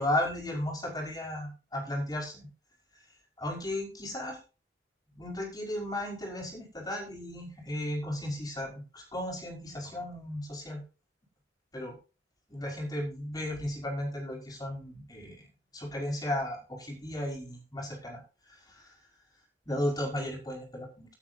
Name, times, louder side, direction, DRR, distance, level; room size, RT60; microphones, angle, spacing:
voice 1, 0.0-2.5 3.4-4.4 5.1-10.8 11.7-11.9 12.5-15.4 15.7-18.2 18.7-18.9 19.7-21.1, left 1 dB, 20° left, -1 dB, 5.4 m, -35 dB
17.5 x 9.3 x 2.9 m, 0.33 s
head